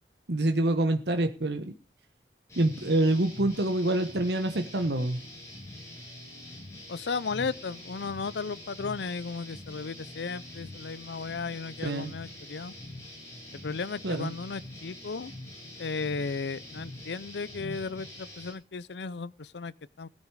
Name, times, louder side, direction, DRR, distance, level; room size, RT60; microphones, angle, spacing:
voice 1, 0.3-1.7 2.6-5.2 11.8-12.1 14.0-14.3, right 1 dB, 75° right, 1.3 m, -26 dB
sound 1, 2.5-18.5, left 1 dB, 15° left, 7.9 m, -45 dB
voice 2, 6.9-12.7 13.5-15.3 15.8-20.1, left 4 dB, 80° left, 0.6 m, -35 dB
16.5 x 10.5 x 4.8 m
head